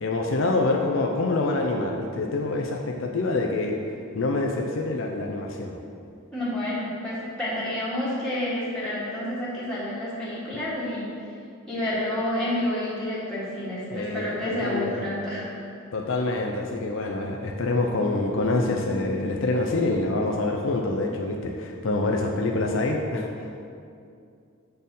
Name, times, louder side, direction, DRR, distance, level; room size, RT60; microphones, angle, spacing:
voice 1, 0.0-3.8 4.1-5.8 13.9-15.1 15.9-23.3, left 2 dB, 65° left, 1 dB, 0.6 m, -26 dB
voice 2, 6.3-11.1 11.7-15.5, left 1 dB, 5° left, -11 dB, 1.8 m, -29 dB
7.9 x 4.4 x 5.4 m, 2.5 s
head